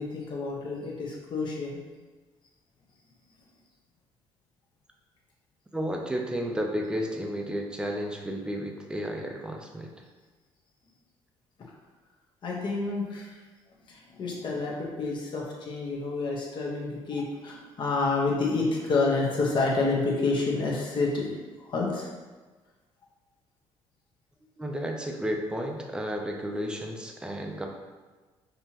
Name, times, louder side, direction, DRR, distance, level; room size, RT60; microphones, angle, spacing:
voice 1, 0.0-1.8 12.4-13.4 13.9-21.3 21.6-22.1, left 3 dB, 45° left, -2 dB, 1.1 m, -29 dB
voice 2, 5.7-9.9 24.6-27.7, equal, 10° right, 2 dB, 0.5 m, -32 dB
5.4 x 3.0 x 2.9 m, 1.3 s
cardioid pair, 120°, 11 cm